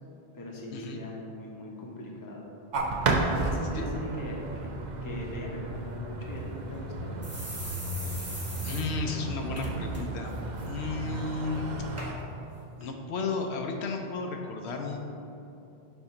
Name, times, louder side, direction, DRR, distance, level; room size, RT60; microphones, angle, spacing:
voice 1, 0.3-2.5 3.1-4.7 5.0-7.2, left 1 dB, 20° left, -2 dB, 0.7 m, -40 dB
sound 1, 2.7-12.1, right 2 dB, 50° right, 0.6 m, -33 dB
sound 2, 6.3-6.4 6.7-6.8 7.2-8.8 9.2-9.3 9.6-10.0 10.3-10.7 11.3-11.4 12.0-12.1 12.8-12.9, right 1 dB, 15° right, 0.8 m, -40 dB
voice 2, 8.6-10.3 10.7-11.7 12.8-15.0, left 4 dB, 75° left, 3 dB, 0.8 m, -33 dB
6.9 x 2.7 x 5.7 m, 2.8 s
omnidirectional pair, 1.1 m